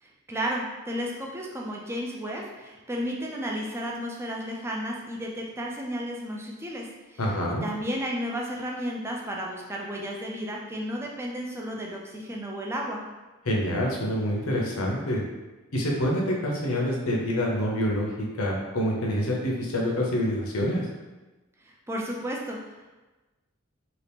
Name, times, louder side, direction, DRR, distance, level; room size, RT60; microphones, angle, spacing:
voice 1, 0.0-7.2 7.5-13.0 21.6-22.9, equal, 10° right, -1 dB, 0.4 m, -33 dB
voice 2, 7.2-7.6 13.5-15.2 15.7-20.9, equal, 80° left, -2 dB, 0.7 m, -26 dB
2.8 x 2.4 x 3.4 m, 1.2 s
head